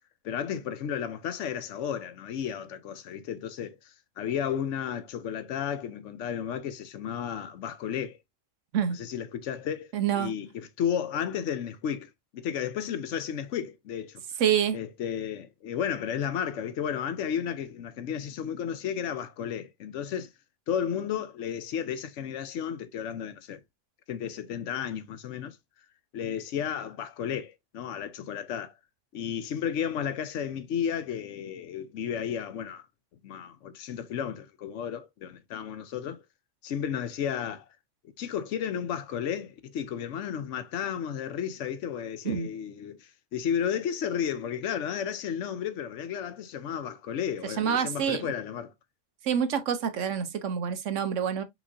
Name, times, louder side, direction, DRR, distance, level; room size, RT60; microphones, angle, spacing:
voice 1, 0.2-8.2 8.9-9.9 10.2-14.2 14.7-20.3 20.7-23.6 24.1-25.6 26.1-28.7 29.1-32.8 33.2-36.2 36.6-37.6 38.2-48.7, left 8 dB, 90° left, 1.0 m, -33 dB
voice 2, 9.9-10.3 14.4-14.8 42.2-42.5 47.6-48.3 49.2-51.4, right 8 dB, 90° right, 1.2 m, -27 dB
5.9 x 3.2 x 2.6 m
omnidirectional pair, 1.2 m